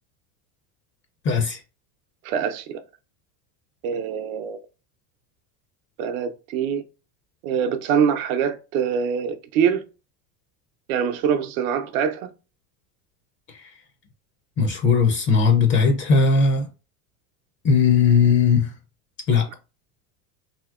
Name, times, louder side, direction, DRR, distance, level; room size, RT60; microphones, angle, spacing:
voice 1, 1.2-1.6 14.6-16.7 17.6-18.7 19.3-19.5, left 5 dB, 30° left, 0.4 m, -18 dB
voice 2, 2.2-2.8 3.8-4.6 6.0-6.8 7.4-9.8 10.9-12.3, right 7 dB, 75° right, 0.7 m, -24 dB
2.8 x 2.8 x 2.4 m
supercardioid pair, 125°, 43 cm